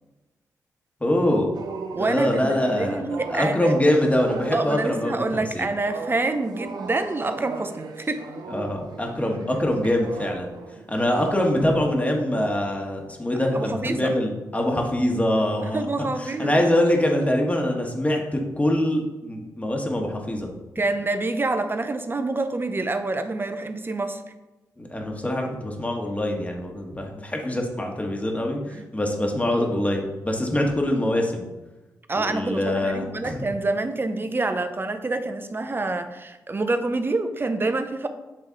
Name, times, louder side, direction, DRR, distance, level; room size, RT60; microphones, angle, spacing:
voice 1, 1.0-1.5 1.9-5.7 8.5-10.5 10.9-15.9 16.2-18.2 18.6-20.5 24.8-31.5 32.1-33.4, left 1 dB, 20° left, 1 dB, 1.4 m, -24 dB
sound 1, 1.5-11.9 12.4-12.7 13.3-13.6 14.0-14.3, right 4 dB, 75° right, 0.6 m, -38 dB
voice 2, 1.9-3.7 4.5-8.3 13.5-14.1 15.7-16.6 20.8-24.2 28.7-28.8 32.1-38.1, right 2 dB, 30° right, 9 dB, 0.7 m, -27 dB
7.5 x 3.2 x 4.0 m, 1.1 s
supercardioid pair, 50°, 7 cm